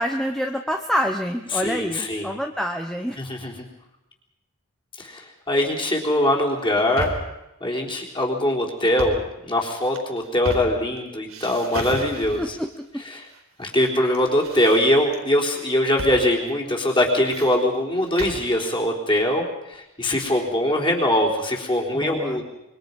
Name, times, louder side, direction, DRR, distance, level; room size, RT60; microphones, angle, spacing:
voice 1, 0.0-3.2 12.4-13.0 21.9-22.4, equal, ahead, 3 dB, 0.9 m, -27 dB
voice 2, 1.5-2.4 3.2-3.7 5.0-5.2 5.5-7.1 7.6-12.6 13.1-13.2 13.6-22.5, left 1 dB, 20° left, -1 dB, 3.8 m, -22 dB
sound 1, 6.6-7.4 8.8-9.3 9.8-11.0 11.3-12.6 13.3-13.9 14.1-15.2 16.0-16.2 16.5-16.6 17.0-18.5, right 1 dB, 80° right, 4.3 m, -34 dB
26.0 x 24.0 x 5.4 m, 0.92 s
head